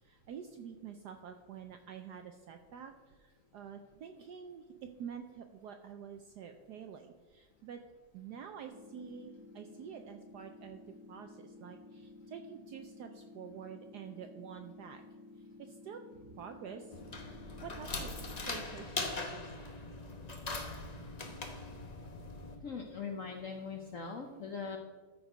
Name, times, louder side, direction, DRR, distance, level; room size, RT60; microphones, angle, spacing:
voice 1, 0.0-7.8 8.1-10.8 11.1-15.0 15.6-17.0 17.6-19.7, right 7 dB, 75° right, 6 dB, 0.9 m, -48 dB
sound 1, 8.6-18.6, left 2 dB, 15° right, 1.4 m, -54 dB
sound 2, 16.9-22.5, left 3 dB, 45° left, 0.5 m, -41 dB
voice 2, 22.6-24.8, left 5 dB, 65° left, 2 dB, 0.8 m, -41 dB
13.5 x 4.7 x 5.0 m, 1.4 s
omnidirectional pair, 2.3 m